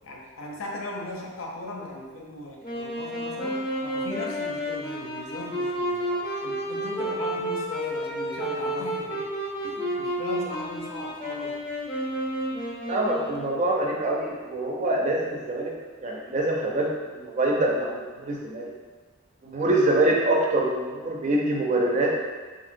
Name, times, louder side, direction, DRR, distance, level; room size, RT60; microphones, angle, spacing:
voice 1, 0.0-9.3 9.6-11.6, left 2 dB, 75° left, -1 dB, 0.5 m, -38 dB
Wind instrument woodwind instrument, 2.6-13.7, equal, 25° left, 0.6 m, -31 dB
voice 2, 12.9-15.7 16.0-18.7 19.4-22.1, right 1 dB, 35° right, -2 dB, 0.4 m, -25 dB
2.9 x 2.8 x 2.6 m, 1.4 s
head